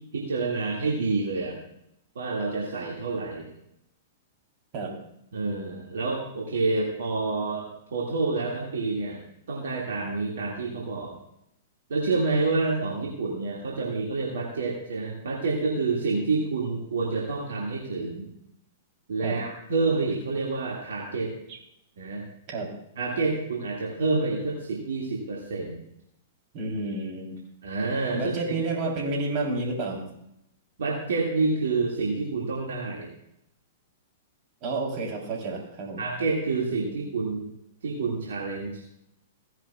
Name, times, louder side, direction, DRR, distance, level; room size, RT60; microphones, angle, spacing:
voice 1, 0.1-1.5 2.2-3.5 5.3-9.2 9.5-11.2 11.9-18.3 19.1-21.4 22.0-22.2 23.0-25.8 27.6-28.3 30.8-33.1 36.0-37.5 37.8-38.8, right 3 dB, 70° right, -4 dB, 2.1 m, -28 dB
voice 2, 26.5-27.4 28.1-30.1 34.6-36.0, right 2 dB, 40° right, 0 dB, 3.6 m, -30 dB
16.5 x 10.5 x 2.4 m, 0.78 s
figure-of-eight pair, 105°, 0 cm